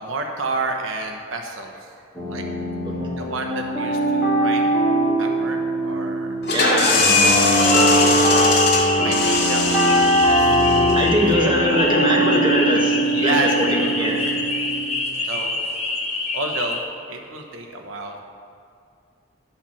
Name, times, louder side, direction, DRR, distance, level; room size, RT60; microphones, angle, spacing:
voice 1, 0.0-1.9 2.2-2.4 3.2-4.7 5.2-6.3 7.2-7.5 8.3-8.6 9.0-10.6 11.3-11.5 12.0-12.2 13.0-14.4 15.2-15.6 16.3-16.8 17.1-18.2, right 3 dB, 85° right, 3 dB, 1.0 m, -30 dB
sound 1, 2.1-14.8, right 1 dB, 10° right, 2.4 m, -21 dB
sound 2, 6.4-11.9, left 3 dB, 55° left, 2.0 m, -21 dB
voice 2, 6.5-7.1 10.9-14.2 15.1-15.3, equal, 25° right, -2 dB, 1.4 m, -22 dB
sound 3, 7.5-16.8, left 3 dB, 30° left, 1.0 m, -27 dB
10.0 x 5.7 x 7.0 m, 2.5 s
head